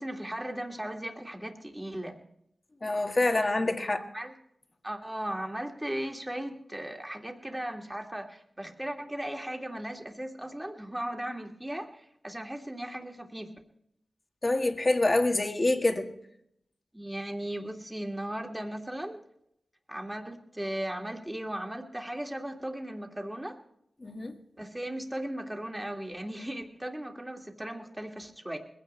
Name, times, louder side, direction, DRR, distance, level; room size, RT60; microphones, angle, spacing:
voice 1, 0.0-2.2 4.1-4.3 4.8-13.5 16.9-19.2 19.9-23.6 24.6-28.6, right 1 dB, 10° right, 2.2 m, -37 dB
voice 2, 2.8-4.0 14.4-16.1 24.0-24.4, left 2 dB, 35° left, 1.7 m, -26 dB
21.0 x 16.0 x 3.3 m
wide cardioid pair, 70°, 0 cm